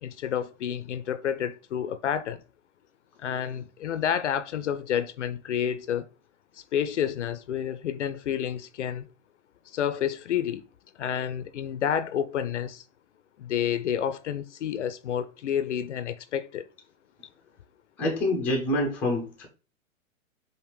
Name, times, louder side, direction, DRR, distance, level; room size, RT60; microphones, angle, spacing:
voice 1, 0.0-2.4 3.2-6.1 6.7-9.1 9.7-10.6 11.0-12.8 13.4-16.7, left 9 dB, 60° left, 0.5 m, -29 dB
voice 2, 18.0-19.5, left 1 dB, 5° left, 0.4 m, -26 dB
4.9 x 2.5 x 3.2 m
figure-of-eight pair, 115°, 42 cm